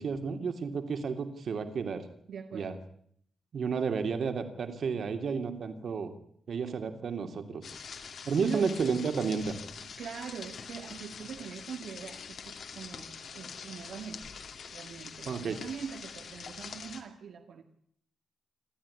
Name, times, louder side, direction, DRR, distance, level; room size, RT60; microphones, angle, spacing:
voice 1, 0.0-2.0 2.5-2.8 3.5-6.1 6.5-7.6 8.3-9.6 15.2-15.6, right 5 dB, 50° right, 8 dB, 2.8 m, -32 dB
voice 2, 2.3-2.7 8.4-8.7 9.8-14.3 14.7-17.6, right 7 dB, 70° right, 4 dB, 2.0 m, -42 dB
sound 1, 7.6-17.0, left 6 dB, 55° left, 2.5 m, -45 dB
27.5 x 13.0 x 9.9 m, 0.68 s
wide cardioid pair, 165°, 0 cm